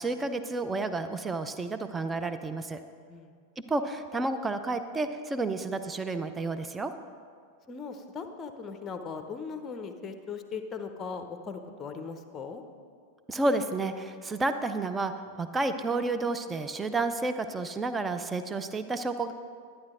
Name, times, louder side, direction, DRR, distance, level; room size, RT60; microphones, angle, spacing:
voice 1, 0.0-2.8 3.7-6.9 13.3-15.1 15.4-19.3, right 3 dB, 15° right, 9 dB, 0.5 m, -30 dB
voice 2, 7.7-12.6, left 5 dB, 20° left, 7 dB, 0.8 m, -39 dB
11.5 x 9.6 x 3.7 m, 2.1 s
figure-of-eight pair, 90°, 0 cm